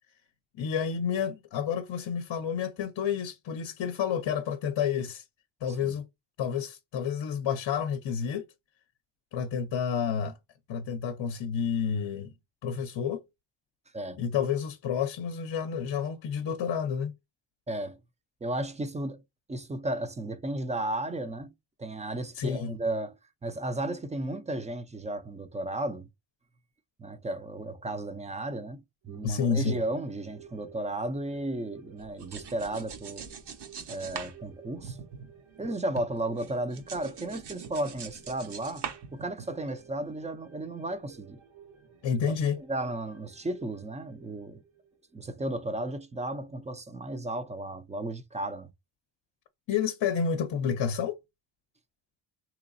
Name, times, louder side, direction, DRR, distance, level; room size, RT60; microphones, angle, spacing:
voice 1, 0.6-5.2 5.6-6.1 6.4-8.5 9.3-10.4 10.7-12.3 12.6-13.2 14.2-17.1 22.4-22.8 29.2-29.8 42.0-42.6 49.7-51.2, left 7 dB, 60° left, 0.6 m, -30 dB
voice 2, 17.7-18.0 18.4-19.2 19.5-21.5 21.8-23.1 23.4-26.1 27.0-33.2 33.9-35.0 35.6-38.9 39.1-41.4 42.6-44.6 45.1-48.7, right 1 dB, 15° right, 0.4 m, -34 dB
sound 1, 29.0-45.8 46.2-46.3, right 7 dB, 85° right, 1.2 m, -55 dB
sound 2, 32.0-35.7 36.0-39.7, right 7 dB, 60° right, 0.8 m, -42 dB
3.9 x 2.9 x 2.5 m
wide cardioid pair, 140°, 47 cm